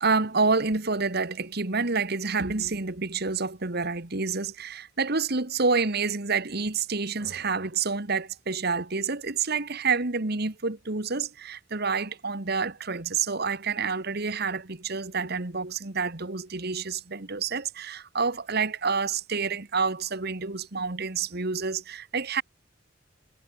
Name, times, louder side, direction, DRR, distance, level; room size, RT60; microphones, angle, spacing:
voice 1, 0.0-22.4, right 4 dB, 55° right, 1.7 m, -28 dB
head